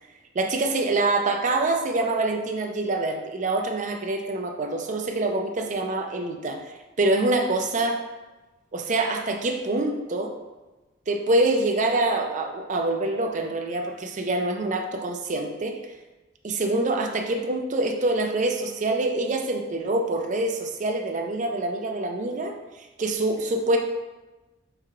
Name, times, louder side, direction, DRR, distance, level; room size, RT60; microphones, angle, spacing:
voice 1, 0.3-8.0 8.7-10.3 11.1-15.8 16.4-23.8, right 2 dB, 40° right, 3 dB, 0.5 m, -25 dB
4.7 x 2.3 x 4.7 m, 1.1 s
head